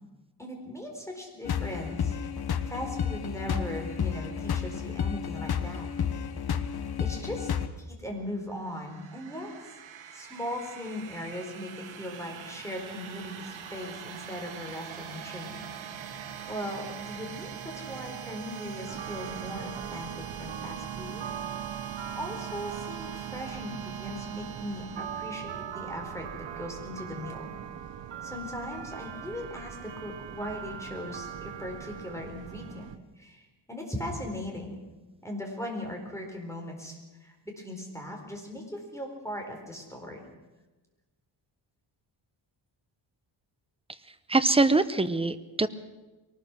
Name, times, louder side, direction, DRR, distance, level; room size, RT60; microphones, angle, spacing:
voice 1, 0.4-2.2 2.7-5.9 7.0-7.5 7.8-9.5 10.1-15.7 16.5-21.2 22.2-27.5 28.2-32.9 33.2-34.8 35.2-40.2, left 1 dB, 5° left, 2 dB, 4.3 m, -39 dB
sound 1, 1.5-7.7, left 7 dB, 50° left, 1.2 m, -31 dB
sound 2, 8.4-26.1, right 9 dB, 85° right, 1.8 m, -42 dB
sound 3, 18.9-33.0, right 8 dB, 65° right, 1.4 m, -41 dB
voice 2, 44.3-45.7, right 3 dB, 10° right, 11 dB, 0.8 m, -23 dB
23.0 x 19.0 x 6.3 m, 1.2 s
wide cardioid pair, 145°, 47 cm